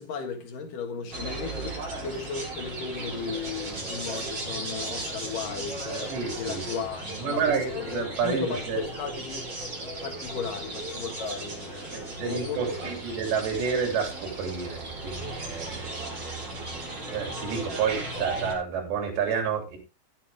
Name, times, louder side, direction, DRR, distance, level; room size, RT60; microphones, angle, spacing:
voice 1, 0.0-9.5 10.0-13.0, left 5 dB, 60° left, 2.5 m, -35 dB
sound 1, 1.1-18.5, right 2 dB, 25° right, 4.0 m, -36 dB
voice 2, 6.1-6.6 7.0-8.8 11.9-16.4 17.1-19.8, right 6 dB, 60° right, 5.3 m, -30 dB
15.0 x 9.2 x 3.5 m
omnidirectional pair, 5.9 m